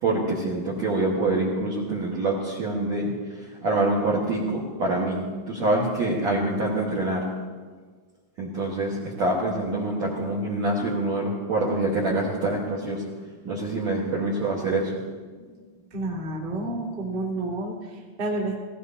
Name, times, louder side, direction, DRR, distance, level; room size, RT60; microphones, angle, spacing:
voice 1, 0.0-7.2 8.4-13.0 13.5-14.9, right 2 dB, 55° right, -4 dB, 2.1 m, -26 dB
voice 2, 15.9-18.5, right 2 dB, 20° right, -4 dB, 1.7 m, -30 dB
18.5 x 17.5 x 2.9 m, 1.5 s
omnidirectional pair, 5.0 m